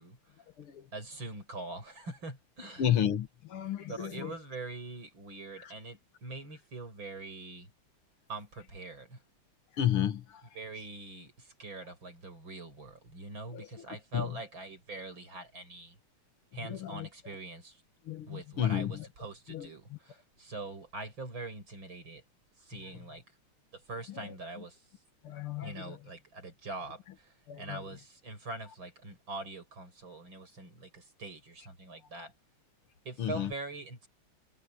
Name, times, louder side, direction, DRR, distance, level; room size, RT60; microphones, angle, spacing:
voice 1, 0.0-0.4 0.9-2.8 3.9-7.7 8.3-9.2 10.6-16.0 16.5-17.8 18.3-22.2 22.6-23.2 23.7-24.9 25.6-32.3 33.0-34.1, right 2 dB, 65° right, 8.1 m, -43 dB
voice 2, 0.6-0.9 2.8-4.3 5.6-5.7 9.7-10.4 13.5-13.7 14.1-14.4 16.6-17.1 18.0-19.1 19.5-20.0 24.2-24.6 25.2-26.0 27.5-27.8 33.2-33.5, left 10 dB, 85° left, 2.4 m, -33 dB
omnidirectional pair, 2.3 m